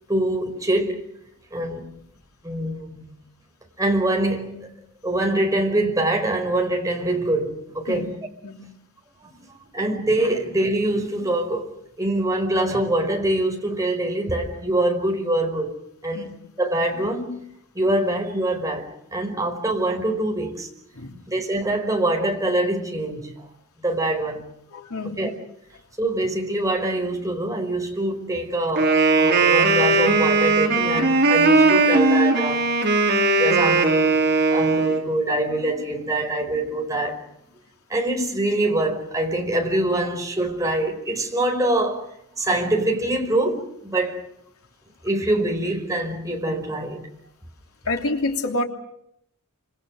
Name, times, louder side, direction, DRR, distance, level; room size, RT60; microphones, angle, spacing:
voice 1, 0.1-1.0 1.5-1.9 2.4-3.1 3.8-4.7 5.0-8.1 9.7-11.7 12.0-15.7 16.0-17.4 17.7-20.7 21.3-23.5 23.8-24.5 25.2-25.3 26.0-32.6 33.4-34.2 34.5-37.2 37.9-42.1 42.4-44.3 45.0-47.1, right 1 dB, 15° right, 5.0 m, -24 dB
voice 2, 24.7-25.2 47.8-48.6, left 2 dB, 90° left, 3.1 m, -28 dB
Wind instrument woodwind instrument, 28.8-35.0, right 3 dB, 50° right, 4.1 m, -18 dB
29.0 x 26.5 x 6.4 m
head